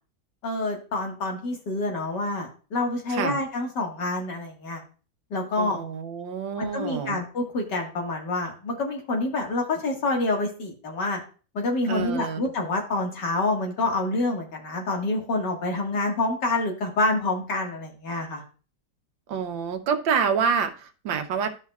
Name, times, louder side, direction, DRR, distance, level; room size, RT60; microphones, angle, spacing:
voice 1, 0.4-4.8 5.3-5.8 6.6-11.2 11.5-18.4, left 2 dB, 65° left, 0 dB, 2.4 m, -27 dB
voice 2, 5.6-7.2 11.9-12.4 19.3-21.5, right 6 dB, 90° right, 7 dB, 1.7 m, -27 dB
13.5 x 5.6 x 2.4 m, 0.37 s
omnidirectional pair, 2.0 m